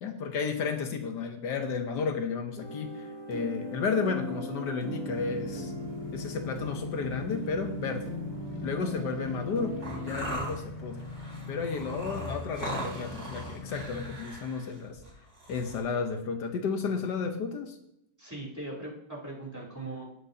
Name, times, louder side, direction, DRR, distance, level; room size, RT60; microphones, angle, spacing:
voice 1, 0.0-5.7 6.1-8.1 8.6-11.0 11.5-15.0 15.5-17.8, left 5 dB, 75° left, 6 dB, 1.5 m, -32 dB
sound 1, 2.6-10.4, right 1 dB, 75° right, 3.8 m, -39 dB
sound 2, 4.9-14.2, left 3 dB, 35° left, 0.8 m, -41 dB
sound 3, 9.8-15.8, right 1 dB, 60° right, 4.0 m, -39 dB
voice 2, 18.2-20.1, right 2 dB, 10° right, -3 dB, 3.0 m, -40 dB
18.0 x 7.9 x 2.8 m, 0.78 s
omnidirectional pair, 1.9 m